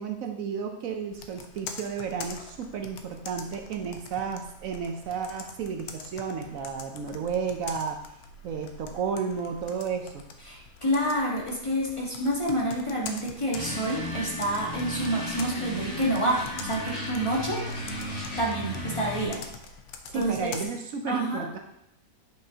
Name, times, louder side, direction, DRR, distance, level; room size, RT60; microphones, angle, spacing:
voice 1, 0.0-8.0 8.4-10.2 20.1-21.6, right 6 dB, 70° right, 4 dB, 1.0 m, -32 dB
Computer keyboard, 1.1-20.6, left 5 dB, 85° left, 1.2 m, -45 dB
voice 2, 10.4-17.6 18.4-19.4 20.1-20.5 21.1-21.5, right 1 dB, 20° left, -4 dB, 1.4 m, -28 dB
sound 1, 13.5-19.3, equal, 55° left, 2.6 m, -35 dB
9.3 x 5.4 x 2.8 m, 0.80 s
omnidirectional pair, 1.5 m